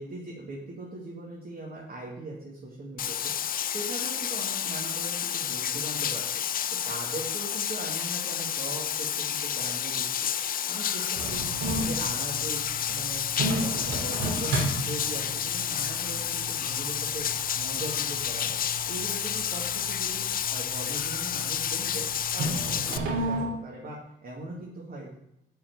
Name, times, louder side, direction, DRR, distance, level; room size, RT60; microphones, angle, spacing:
voice 1, 0.0-3.3 3.7-6.4 6.9-10.3 10.7-13.2 13.6-17.3 17.5-18.6 18.9-20.2 20.5-22.1 22.3-25.1, right 2 dB, 50° right, -3 dB, 2.1 m, -40 dB
Bathtub (filling or washing), 3.0-23.0, left 9 dB, 45° left, 0.5 m, -30 dB
sound 1, 11.2-23.4, right 2 dB, 85° right, 2.8 m, -34 dB
11.0 x 4.7 x 4.7 m, 0.83 s
cardioid pair, 90°, 20 cm